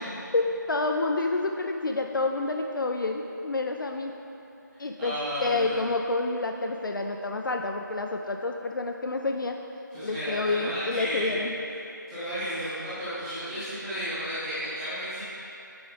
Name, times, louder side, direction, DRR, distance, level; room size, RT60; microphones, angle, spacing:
voice 1, 0.3-4.2 4.8-9.6 10.0-11.5, left 3 dB, 75° left, 3 dB, 0.4 m, -28 dB
voice 2, 4.7-5.7 9.9-11.5 12.1-15.2, equal, 5° right, -14 dB, 0.7 m, -33 dB
8.7 x 4.6 x 3.7 m, 2.8 s
figure-of-eight pair, 165°, 11 cm